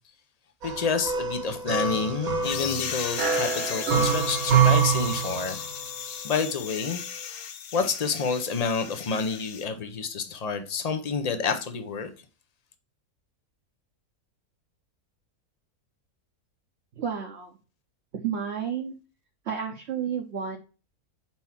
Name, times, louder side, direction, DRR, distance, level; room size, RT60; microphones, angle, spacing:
voice 1, 0.6-5.6 6.2-7.0 7.7-12.1, left 5 dB, 50° left, 0.4 m, -29 dB
sound 1, 0.6-5.8, right 6 dB, 70° right, 1.4 m, -25 dB
sound 2, 2.4-9.6, left 8 dB, 75° left, 1.2 m, -36 dB
voice 2, 17.0-17.6 18.2-18.9 19.4-20.6, right 7 dB, 55° right, 0.9 m, -31 dB
4.6 x 4.4 x 5.5 m
omnidirectional pair, 1.6 m